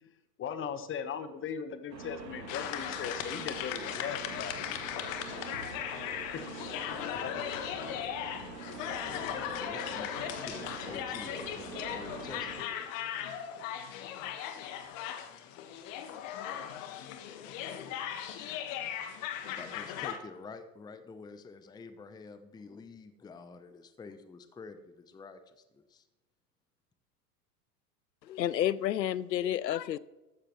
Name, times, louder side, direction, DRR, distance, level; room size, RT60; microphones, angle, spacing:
voice 1, 0.0-4.6 6.3-6.4 7.1-7.3, left 7 dB, 25° left, 1.2 m, -38 dB
sound 1, 1.9-12.6, right 4 dB, 85° right, 2.7 m, -45 dB
sound 2, 2.5-20.2, left 10 dB, 50° left, 1.5 m, -38 dB
voice 2, 9.0-12.9 19.5-26.1, left 4 dB, 10° left, 0.7 m, -48 dB
voice 3, 28.2-30.0, left 11 dB, 80° left, 0.7 m, -30 dB
14.5 x 12.5 x 3.1 m
hypercardioid pair, 95°, 49 cm